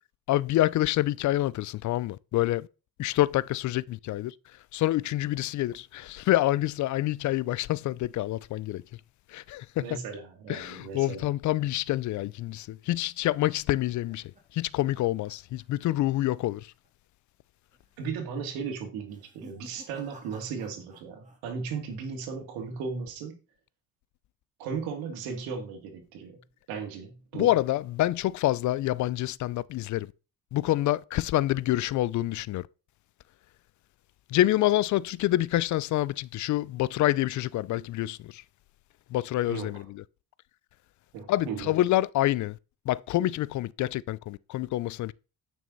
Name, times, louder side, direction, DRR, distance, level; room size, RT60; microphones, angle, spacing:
voice 1, 0.3-2.7 3.0-4.3 4.7-8.8 9.3-9.9 10.5-16.7 27.3-30.1 30.5-32.7 34.3-38.4 39.1-40.0 41.3-42.6 42.9-45.1, left 15 dB, 55° left, 0.5 m, -27 dB
voice 2, 9.8-11.3 18.0-23.3 24.6-26.4 26.7-27.5 39.5-39.8 41.1-41.7, right 5 dB, 85° right, 2.5 m, -36 dB
sound 1, 13.4-15.9 16.2-16.5 16.8-16.9 17.7-18.1 19.0-21.4 21.7-22.2, right 2 dB, 20° right, 3.3 m, -54 dB
9.0 x 6.3 x 4.0 m
cardioid pair, 100°, 36 cm